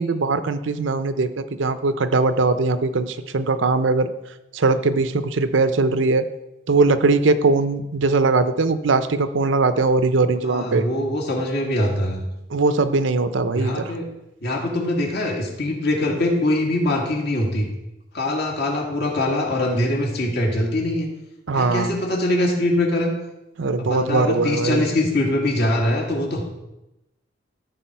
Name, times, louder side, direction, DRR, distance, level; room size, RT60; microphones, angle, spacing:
voice 1, 0.0-4.1 4.5-6.3 6.7-10.8 12.5-13.9 21.5-21.9 23.6-24.9, right 3 dB, 80° right, 11 dB, 0.6 m, -20 dB
voice 2, 10.4-12.2 13.5-14.1 14.4-17.7 18.1-21.1 21.5-23.1 23.8-26.4, left 1 dB, 60° left, -1 dB, 2.2 m, -23 dB
14.0 x 4.9 x 4.5 m, 0.93 s
head